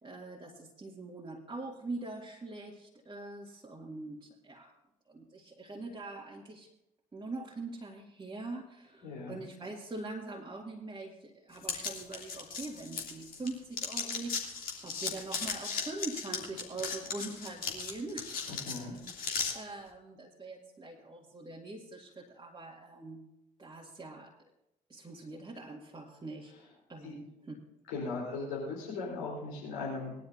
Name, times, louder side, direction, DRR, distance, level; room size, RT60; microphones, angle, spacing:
voice 1, 0.0-4.7 5.1-6.7 7.1-14.5 14.8-18.9 19.5-23.2 23.6-24.3 24.9-26.5 26.9-27.6, right 2 dB, 20° right, -3 dB, 2.1 m, -43 dB
voice 2, 9.0-9.4 18.5-19.0 27.0-27.1 27.9-30.2, left 3 dB, 65° left, -4 dB, 4.0 m, -38 dB
sound 1, 11.6-13.5 13.7-19.5, left 5 dB, 50° left, 2.9 m, -36 dB
20.5 x 12.0 x 2.7 m, 0.84 s
figure-of-eight pair, 45°, 19 cm